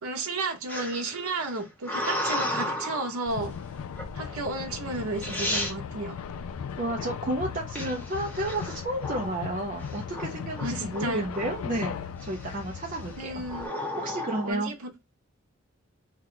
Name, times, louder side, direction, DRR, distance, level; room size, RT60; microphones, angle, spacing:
voice 1, 0.0-3.5 4.2-6.2 10.6-11.3 13.2-13.7 14.4-15.1, right 2 dB, 85° right, 0.7 m, -33 dB
sound 1, 0.7-3.2 4.0-4.4 4.9-5.0 5.2-5.8 7.8-9.4 9.8-10.3 10.6-11.8 12.2-12.7 13.4-14.5, left 1 dB, 10° left, 0.7 m, -33 dB
sound 2, 3.3-13.7, left 7 dB, 80° left, 0.3 m, -37 dB
voice 2, 6.8-13.3 14.0-14.7, right 1 dB, 35° right, 0.5 m, -32 dB
2.8 x 2.2 x 3.7 m
head